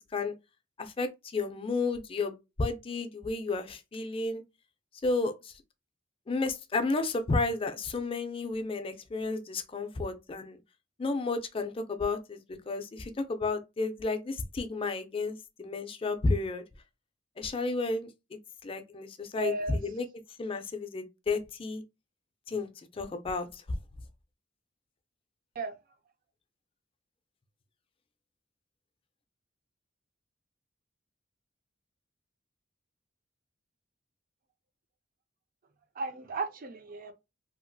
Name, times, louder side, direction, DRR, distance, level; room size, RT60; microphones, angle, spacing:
voice 1, 0.8-4.4 5.0-5.5 6.3-10.6 11.0-12.4 12.7-16.6 17.4-20.1 20.4-21.8 22.5-23.6, left 3 dB, 30° left, 0.4 m, -32 dB
voice 2, 19.4-19.8 25.6-25.7 36.0-37.1, right 4 dB, 50° right, 0.4 m, -35 dB
2.7 x 2.4 x 2.6 m
head